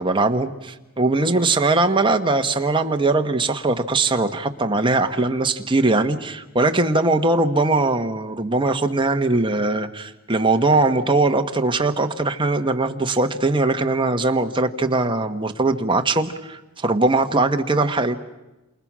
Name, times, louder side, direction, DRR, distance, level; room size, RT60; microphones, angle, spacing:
voice 1, 0.0-18.2, right 2 dB, 20° right, 5 dB, 1.3 m, -20 dB
28.5 x 28.0 x 6.3 m, 1.0 s
head